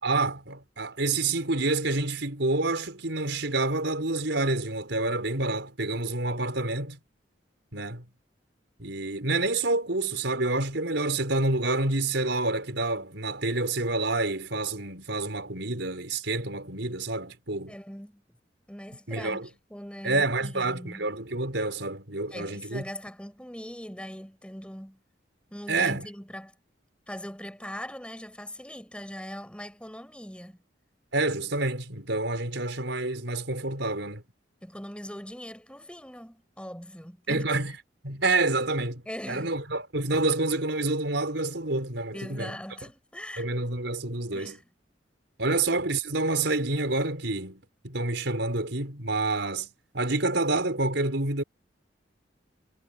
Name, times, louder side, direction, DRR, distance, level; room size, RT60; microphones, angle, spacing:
voice 1, 0.0-7.0 7.7-8.1 8.8-17.7 19.1-19.5 20.0-22.8 25.7-26.1 31.1-34.2 37.3-37.7 38.0-39.0 39.3-42.6 43.4-44.6 45.4-51.4, right 2 dB, 75° right, 4.8 m, -28 dB
voice 2, 17.7-18.2 18.7-21.1 22.3-25.0 25.5-26.5 27.1-30.6 34.6-37.5 39.1-39.5 42.1-43.5 44.3-44.6, equal, 5° left, 5.6 m, -41 dB
head